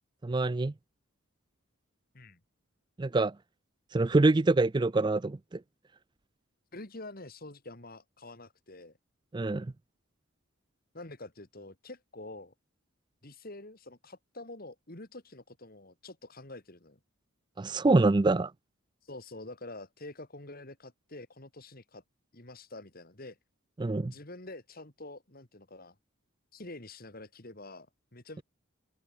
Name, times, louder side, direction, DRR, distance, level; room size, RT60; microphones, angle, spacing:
voice 1, 0.2-0.7 3.0-3.3 3.9-5.6 9.3-9.7 17.6-18.5 23.8-24.1, right 2 dB, 20° right, 0.4 m, -25 dB
voice 2, 6.7-9.0 10.9-12.5 13.2-17.0 19.0-22.0 22.3-23.4 24.1-26.0 26.5-27.9 28.1-28.4, left 2 dB, 45° left, 2.5 m, -47 dB
head